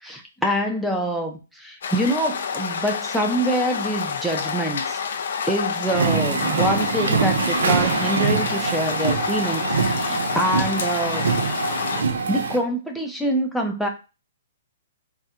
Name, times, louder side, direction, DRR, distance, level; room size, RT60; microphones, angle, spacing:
voice 1, 0.0-5.0 5.5-11.3 12.3-13.9, right 1 dB, ahead, 2 dB, 0.5 m, -25 dB
sound 1, 1.8-12.0, left 6 dB, 65° left, 0.4 m, -28 dB
sound 2, 5.9-12.6, right 5 dB, 90° right, 0.8 m, -24 dB
4.1 x 2.1 x 2.4 m, 0.30 s
hypercardioid pair, 155°, 0 cm